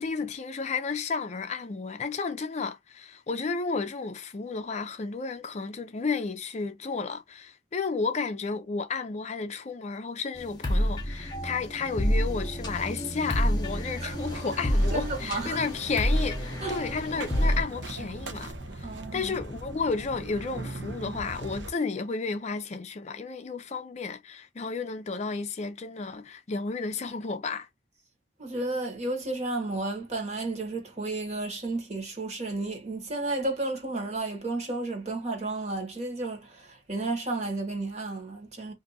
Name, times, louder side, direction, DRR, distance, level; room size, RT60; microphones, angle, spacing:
voice 1, 0.0-27.7, left 4 dB, 40° left, 0.4 m, -32 dB
sound 1, 10.4-17.6, equal, 25° left, 0.8 m, -28 dB
sound 2, 14.1-21.7, right 2 dB, 80° right, 0.8 m, -40 dB
voice 2, 14.9-15.6 16.6-16.7 18.8-19.4 28.4-38.7, right 2 dB, 40° right, 1.2 m, -32 dB
2.6 x 2.5 x 3.9 m
head